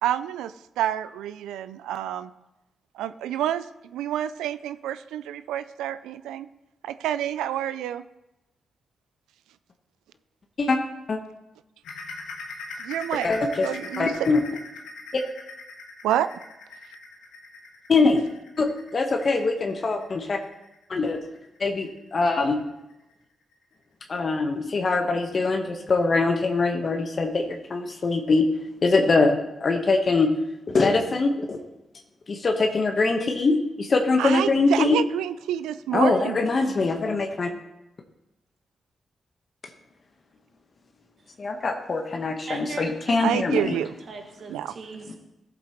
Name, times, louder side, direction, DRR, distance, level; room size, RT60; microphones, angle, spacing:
voice 1, 0.0-2.3 2.9-6.5 6.8-8.0 12.8-13.3 13.6-14.3 16.0-16.3 34.2-36.4 43.2-43.9 44.5-44.7, right 11 dB, 90° right, 0.3 m, -28 dB
sound 1, 11.8-23.1 23.5-23.7 24.1-24.2 24.8-24.9, left 3 dB, 85° left, 1.3 m, -41 dB
voice 2, 13.2-13.7 14.0-14.4 17.9-18.2 18.6-20.4 20.9-21.2 21.6-22.6 24.1-28.4 28.8-30.3 30.7-31.6 32.3-35.0 35.9-37.5 41.4-43.7, left 3 dB, 55° left, 1.2 m, -23 dB
voice 3, 42.5-45.1, right 4 dB, 70° right, 1.8 m, -39 dB
14.0 x 7.5 x 3.0 m
supercardioid pair, 45°, 0 cm